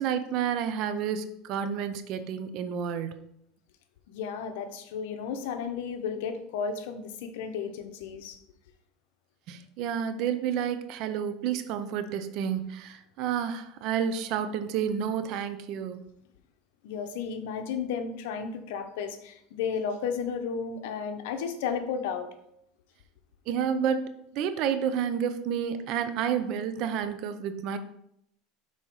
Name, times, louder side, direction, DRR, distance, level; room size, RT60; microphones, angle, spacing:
voice 1, 0.0-3.3 9.5-16.0 23.5-27.8, right 8 dB, 55° right, 10 dB, 0.6 m, -30 dB
voice 2, 4.1-8.4 16.8-22.3, left 6 dB, 85° left, 7 dB, 0.8 m, -33 dB
5.6 x 4.2 x 4.6 m, 0.75 s
supercardioid pair, 135°, 0 cm